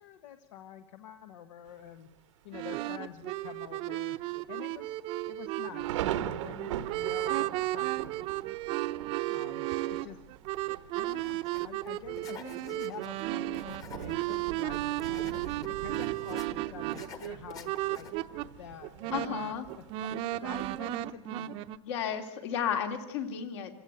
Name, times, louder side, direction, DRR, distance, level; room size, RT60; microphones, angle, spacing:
voice 1, 0.0-2.1 2.4-4.2 4.5-5.0 5.3-8.2 9.3-10.2 10.6-15.3 15.7-18.1 18.6-21.7, left 10 dB, 85° left, 8 dB, 1.5 m, -48 dB
Thunder, 1.7-2.2 2.7-2.8 3.1-3.6 3.9-4.0 4.7-21.0, right 12 dB, 85° right, 1.2 m, -43 dB
sound 1, 2.5-18.5 18.8-21.8, right 16 dB, 35° right, 0.7 m, -34 dB
sound 2, 11.1-11.6 11.9-13.2 13.5-16.5 16.9-18.2, left 6 dB, 25° left, 1.3 m, -49 dB
voice 2, 19.1-19.7 21.8-23.7, left 8 dB, 70° left, 5 dB, 3.0 m, -33 dB
27.5 x 16.5 x 8.1 m, 0.98 s
supercardioid pair, 170°, 15 cm